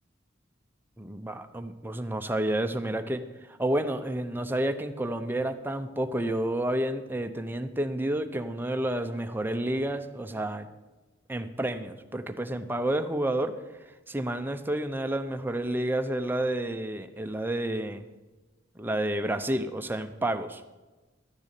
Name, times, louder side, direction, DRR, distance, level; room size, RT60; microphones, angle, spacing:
voice 1, 1.0-3.2 3.6-10.7 11.3-13.5 14.1-18.0 18.8-20.6, right 1 dB, 10° right, 7 dB, 0.7 m, -30 dB
12.5 x 6.9 x 8.3 m, 1.2 s
head